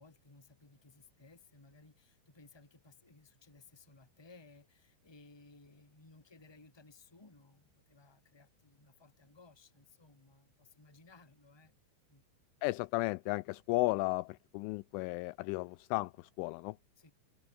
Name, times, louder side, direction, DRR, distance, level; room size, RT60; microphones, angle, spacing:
voice 1, 0.0-11.8 12.1-12.2 17.0-17.1, left 3 dB, 5° left, 2.2 m, -60 dB
voice 2, 12.6-16.8, left 22 dB, 85° left, 2.9 m, -34 dB
omnidirectional pair, 5.8 m